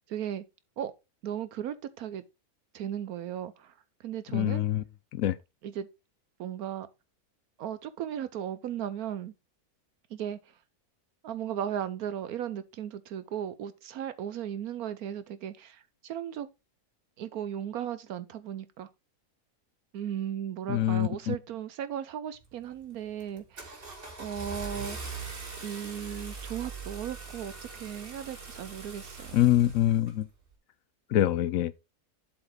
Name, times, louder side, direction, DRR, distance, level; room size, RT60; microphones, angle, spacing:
voice 1, 0.1-0.4 0.8-0.9 1.2-2.2 2.7-3.7 4.0-4.6 5.6-5.9 6.4-6.9 7.6-9.3 10.1-10.4 11.2-16.5 17.2-18.9 19.9-23.8 24.2-25.3 25.6-29.4, right 9 dB, 75° right, 1.1 m, -36 dB
voice 2, 4.3-4.8 5.1-5.4 20.7-21.3 29.3-30.3 31.1-31.7, left 12 dB, 70° left, 0.9 m, -25 dB
Car / Engine starting, 22.4-22.7 23.2-30.2, right 4 dB, 35° right, 2.1 m, -42 dB
7.8 x 4.4 x 4.9 m
omnidirectional pair, 1.7 m